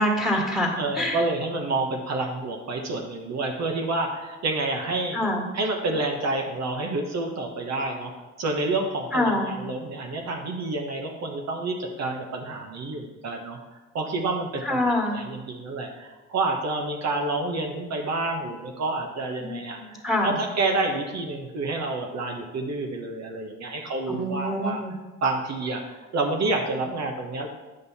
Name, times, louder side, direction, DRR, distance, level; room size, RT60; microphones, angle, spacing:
voice 1, 0.0-1.2 5.1-5.5 9.1-9.5 14.6-15.2 19.4-20.4 24.1-24.9, left 1 dB, ahead, -1 dB, 2.0 m, -25 dB
voice 2, 0.8-5.2 5.5-8.1 8.4-13.6 13.9-24.8 25.2-27.5, right 2 dB, 60° right, 2 dB, 1.1 m, -29 dB
8.7 x 5.4 x 4.2 m, 1.1 s
cardioid pair, 90°, 30 cm